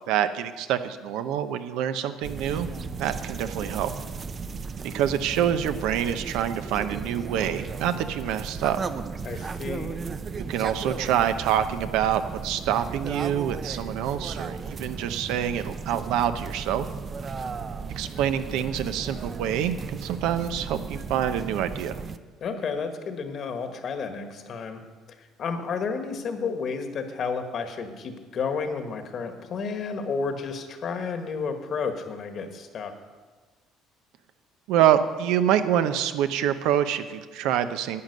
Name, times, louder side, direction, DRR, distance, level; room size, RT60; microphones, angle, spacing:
voice 1, 0.1-2.7 3.0-3.9 4.8-8.8 9.3-9.4 10.3-16.9 18.0-22.0 34.7-38.0, right 10 dB, 80° right, 10 dB, 0.7 m, -26 dB
sound 1, 2.2-22.2, right 5 dB, 30° right, 0.5 m, -35 dB
voice 2, 9.2-10.0 22.4-24.8 25.4-32.9, left 5 dB, 45° left, 7 dB, 1.4 m, -31 dB
11.5 x 9.2 x 6.6 m, 1.4 s
cardioid pair, 130°, 0 cm